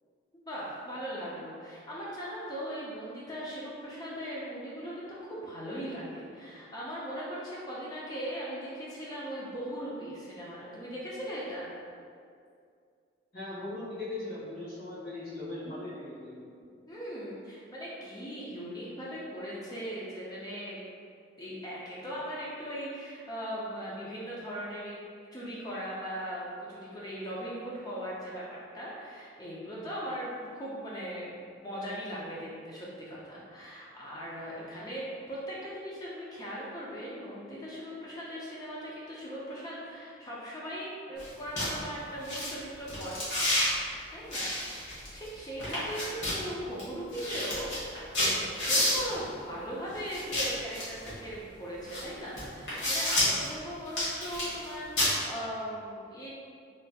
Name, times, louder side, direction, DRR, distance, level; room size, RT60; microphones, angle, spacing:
voice 1, 0.5-11.7 16.9-20.8 21.4-25.1 25.3-43.3 44.1-44.5 44.8-56.3, equal, 20° left, -6 dB, 0.4 m, -39 dB
voice 2, 13.3-16.5, left 2 dB, 50° left, -12 dB, 1.5 m, -39 dB
sound 1, 41.2-41.3 41.6-41.7 42.2-42.5 42.9-43.7 44.3-45.3 45.6-46.4 46.8-46.9 47.1-49.1 50.1-51.1 51.9-52.0 52.4-53.5 53.9-54.7 55.0-55.1, left 1 dB, 70° left, 1.3 m, -29 dB
3.2 x 2.8 x 2.2 m, 2.3 s
head